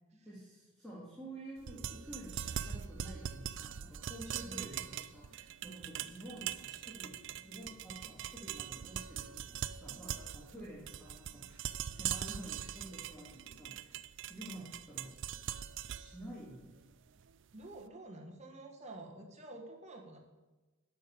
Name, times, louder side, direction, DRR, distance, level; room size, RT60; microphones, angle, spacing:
voice 1, 0.2-11.7 11.9-15.1 15.9-16.7, right 1 dB, ahead, -8 dB, 2.0 m, -50 dB
sound 1, 1.6-17.7, right 9 dB, 55° right, 0.4 m, -42 dB
voice 2, 4.4-4.8 10.5-10.6 14.4-14.7 17.5-20.2, right 1 dB, 30° right, 1 dB, 1.5 m, -49 dB
12.0 x 5.3 x 7.0 m, 1.2 s
head